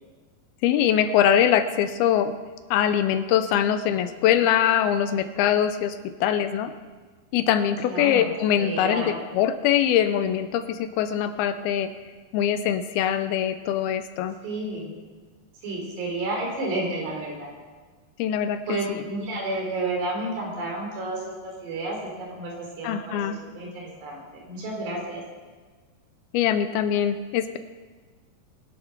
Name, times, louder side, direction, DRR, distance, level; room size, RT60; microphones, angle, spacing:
voice 1, 0.6-2.3 2.7-6.0 6.2-6.7 7.3-11.9 12.3-14.4 18.2-19.0 22.8-23.4 26.3-27.6, left 10 dB, 80° left, 10 dB, 2.5 m, -23 dB
voice 2, 7.9-8.3 8.6-9.1 14.4-15.0 15.6-17.5 18.7-25.2, right 2 dB, 90° right, -1 dB, 5.6 m, -31 dB
23.5 x 7.9 x 5.9 m, 1.4 s
omnidirectional pair, 4.7 m